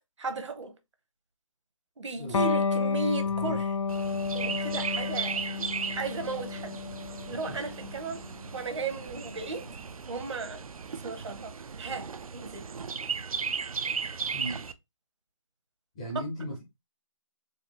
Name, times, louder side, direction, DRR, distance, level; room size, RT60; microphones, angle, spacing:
voice 1, 0.2-0.7 2.0-3.8 4.3-5.4 6.0-6.8 7.3-8.2 8.5-9.6 10.1-10.6 10.9-12.7, right 3 dB, 55° right, 1.0 m, -35 dB
Electric guitar, 2.3-9.5, left 5 dB, 65° left, 0.5 m, -31 dB
Chirp tweet, 3.9-14.7, right 5 dB, 85° right, 0.5 m, -36 dB
voice 2, 14.2-14.6 15.9-16.6, right 1 dB, 10° left, 0.4 m, -37 dB
4.1 x 2.4 x 2.8 m
hypercardioid pair, 165°, 18 cm